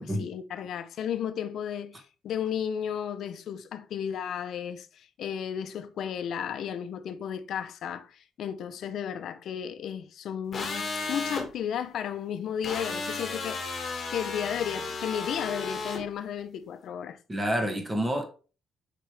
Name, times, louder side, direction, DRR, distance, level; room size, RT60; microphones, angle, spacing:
voice 1, 0.2-17.2, left 8 dB, 60° left, 0.7 m, -34 dB
sound 1, 10.5-11.4 12.6-16.0, left 4 dB, 30° left, 1.8 m, -34 dB
voice 2, 17.3-18.2, equal, 10° right, 1.2 m, -28 dB
7.5 x 5.0 x 3.5 m
cardioid pair, 170°, 0 cm